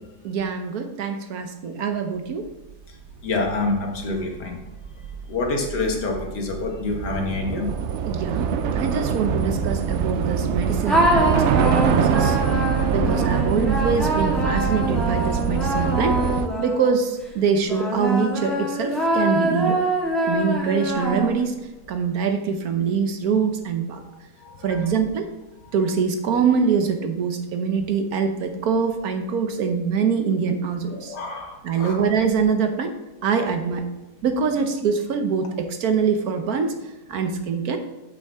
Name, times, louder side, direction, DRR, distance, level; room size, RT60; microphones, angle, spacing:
voice 1, 0.2-2.5 8.0-8.5 8.7-12.4 12.9-16.2 16.6-19.8 20.2-21.6 21.9-24.0 24.6-25.3 25.7-31.1 31.6-32.9 33.2-33.9 34.2-37.8, right 6 dB, 65° right, 6 dB, 1.2 m, -24 dB
Train / Subway metro underground, 3.1-3.2 3.5-16.5, right 7 dB, 80° right, 0.6 m, -24 dB
voice 2, 3.2-4.6 5.3-7.7 12.7-13.1 24.4-24.8 31.0-32.0, left 3 dB, 75° left, 1 dB, 1.9 m, -27 dB
sound 1, 10.9-17.1 17.7-21.6, equal, ahead, 1.7 m, -24 dB
8.4 x 8.1 x 3.5 m, 1.0 s
omnidirectional pair, 1.8 m